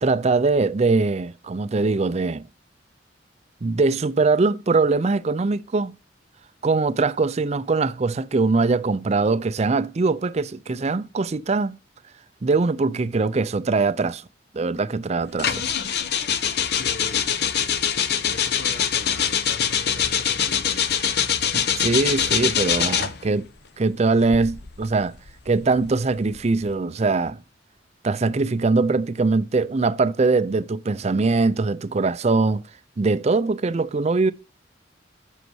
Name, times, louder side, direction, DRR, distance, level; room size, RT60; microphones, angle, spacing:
voice 1, 0.0-2.4 3.6-5.9 6.6-11.8 12.4-14.2 14.5-15.6 21.5-23.5 23.8-25.1 25.5-27.4 28.0-32.6 33.0-34.3, right 3 dB, 35° right, 0.4 m, -22 dB
sound 1, 15.4-23.3 24.1-26.6, left 8 dB, 60° left, 0.8 m, -24 dB
voice 2, 16.7-17.7 18.3-20.8, left 3 dB, 75° left, 1.2 m, -40 dB
8.0 x 6.4 x 4.7 m
head